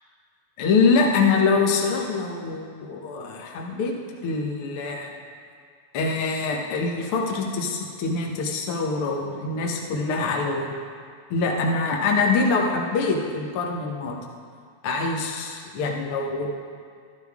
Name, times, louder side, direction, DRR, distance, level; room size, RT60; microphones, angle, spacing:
voice 1, 0.6-3.9 4.2-5.1 5.9-10.7 11.3-14.2 14.8-16.5, left 4 dB, 90° left, 0 dB, 1.2 m, -24 dB
13.5 x 11.5 x 3.6 m, 2.1 s
omnidirectional pair, 4.2 m